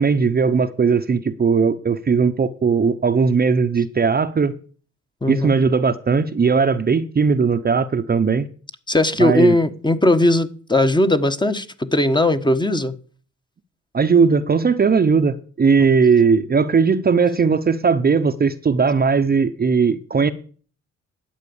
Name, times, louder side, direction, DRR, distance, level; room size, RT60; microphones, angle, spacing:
voice 1, 0.0-4.5 5.3-8.5 9.2-9.6 13.9-20.3, right 5 dB, 30° right, 0.9 m, -18 dB
voice 2, 8.9-11.7 11.9-12.9, left 1 dB, 15° left, 1.3 m, -18 dB
12.0 x 8.1 x 7.1 m
cardioid pair, 90°, 30 cm